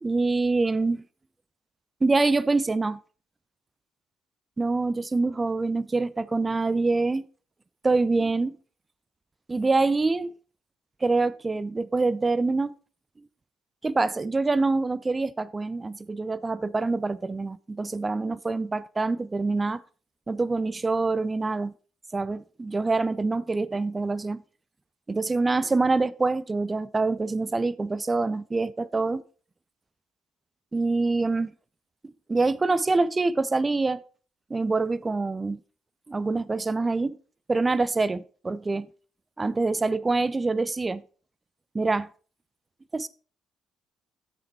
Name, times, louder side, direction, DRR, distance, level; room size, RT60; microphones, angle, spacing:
voice 1, 0.0-1.0 2.0-3.0 4.6-7.3 7.8-8.6 9.5-10.3 11.0-12.7 13.8-19.8 20.3-21.7 22.1-24.4 25.1-29.2 30.7-31.5 32.3-34.0 34.5-35.6 36.1-37.2 37.5-38.9 39.4-41.0 41.7-42.1 42.9-43.1, right 3 dB, 25° right, 0.4 m, -25 dB
7.9 x 6.2 x 4.2 m
figure-of-eight pair, 45°, 0 cm